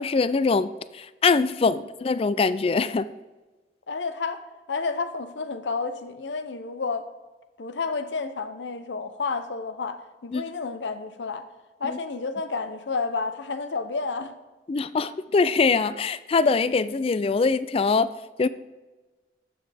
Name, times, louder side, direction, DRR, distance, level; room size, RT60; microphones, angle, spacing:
voice 1, 0.0-3.1 10.3-10.4 11.8-12.0 14.7-18.1 18.4-18.5, left 4 dB, 30° left, 16 dB, 0.3 m, -23 dB
voice 2, 3.9-7.1 7.6-11.4 11.8-14.3, left 4 dB, 85° left, 10 dB, 0.7 m, -31 dB
14.0 x 6.2 x 3.4 m, 1.2 s
head